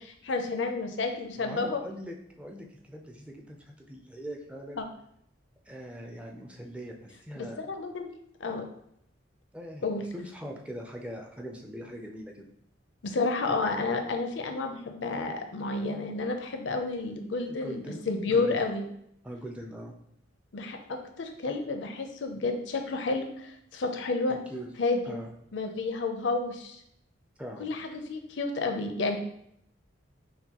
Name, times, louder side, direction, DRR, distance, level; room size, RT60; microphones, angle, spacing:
voice 1, 0.0-1.8 4.8-4.9 7.6-8.1 8.4-8.7 9.8-10.0 13.0-18.9 20.5-24.4 24.8-25.2 25.5-26.8 27.6-29.2, left 3 dB, 65° left, 5 dB, 0.5 m, -30 dB
voice 2, 1.4-4.8 5.7-7.6 9.5-9.8 10.1-12.5 17.5-18.6 19.2-19.9 24.3-24.7 25.0-25.3 27.4-27.7, equal, 5° right, 1 dB, 0.4 m, -41 dB
5.8 x 2.2 x 2.9 m, 0.73 s
head